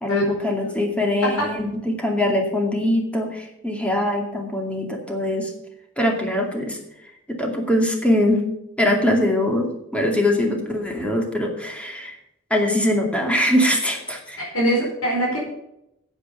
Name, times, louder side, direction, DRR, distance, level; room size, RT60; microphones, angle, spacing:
voice 1, 0.0-5.5 6.0-6.8 7.3-8.4 8.8-12.1 12.5-14.4, left 1 dB, 5° left, 1 dB, 2.3 m, -22 dB
voice 2, 14.4-15.4, equal, 80° left, -3 dB, 4.6 m, -22 dB
9.9 x 8.3 x 7.0 m, 0.82 s
head